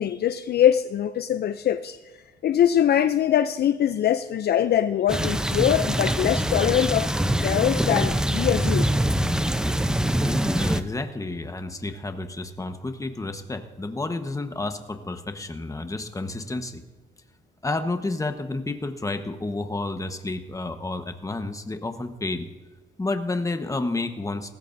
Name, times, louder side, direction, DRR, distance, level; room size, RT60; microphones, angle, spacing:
voice 1, 0.0-2.0 2.4-7.1 7.4-8.9, left 10 dB, 55° left, 11 dB, 0.5 m, -22 dB
sound 1, 5.1-10.8, right 1 dB, 5° right, 0.7 m, -24 dB
voice 2, 10.2-16.8 17.6-22.5 23.0-24.5, left 2 dB, 15° left, 7 dB, 1.2 m, -30 dB
19.0 x 15.0 x 2.7 m, 1.3 s
cardioid pair, 90°, 20 cm